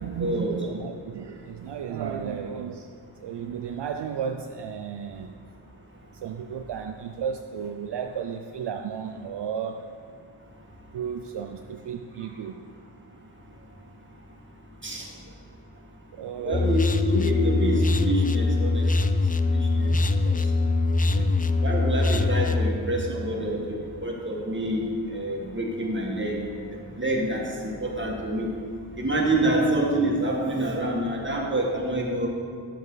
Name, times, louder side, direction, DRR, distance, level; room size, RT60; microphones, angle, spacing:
voice 1, 0.0-2.9 3.2-5.3 6.2-9.8 10.9-12.7 16.1-16.8 19.9-20.3 21.1-21.4 23.6-23.7 29.4-29.5, right 7 dB, 70° right, 6 dB, 0.5 m, -34 dB
voice 2, 16.4-18.9 19.8-19.9 20.3-20.4 21.6-23.6 24.0-26.4 27.0-27.4 27.8-28.5 29.0-32.3, right 1 dB, 25° right, -2 dB, 2.0 m, -26 dB
sound 1, 16.5-22.7, left 3 dB, 20° left, 0.4 m, -23 dB
10.0 x 7.3 x 4.0 m, 2.2 s
cardioid pair, 50°, 43 cm